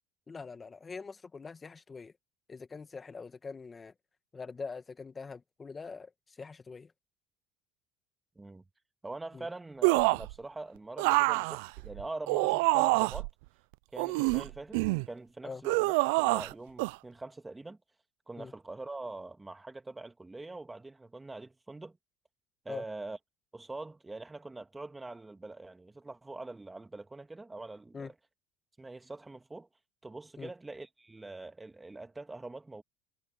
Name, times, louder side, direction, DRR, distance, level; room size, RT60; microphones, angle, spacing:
voice 1, 0.3-2.1 2.5-3.9 4.3-6.9 9.3-9.5 15.4-15.6 18.4-18.5 22.7-22.8 27.9-28.1 30.4-30.5, left 4 dB, 25° left, 1.5 m, -43 dB
voice 2, 9.0-13.3 13.9-14.8 15.1-17.8 18.3-22.0 22.6-23.2 23.5-28.1 28.8-29.7 30.0-32.8, right 2 dB, 15° right, 2.3 m, -44 dB
sound 1, 9.8-10.3 11.0-13.3 14.0-15.1 15.6-16.5 16.8-16.9, right 26 dB, 80° right, 0.4 m, -26 dB
supercardioid pair, 100°, 0 cm